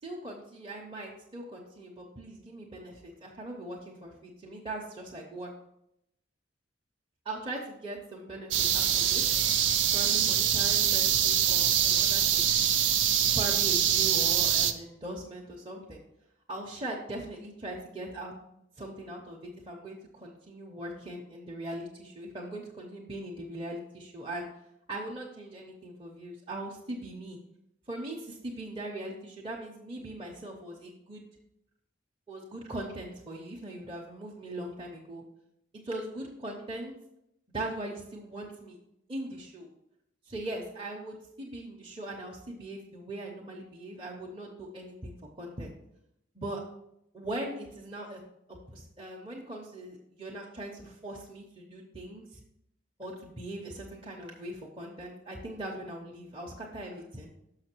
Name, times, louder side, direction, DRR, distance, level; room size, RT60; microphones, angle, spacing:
voice 1, 0.0-5.5 7.2-9.2 9.9-12.5 13.1-16.0 16.5-18.3 18.8-24.5 24.9-27.4 27.9-31.2 32.3-35.2 35.8-36.9 37.5-38.8 39.1-39.7 40.3-45.7 46.3-46.6 47.1-48.2 48.7-52.4 53.0-57.3, right 1 dB, 25° right, -2 dB, 0.8 m, -40 dB
sound 1, 8.5-14.7, right 9 dB, 65° right, 0.5 m, -24 dB
6.5 x 5.7 x 4.4 m, 0.81 s
head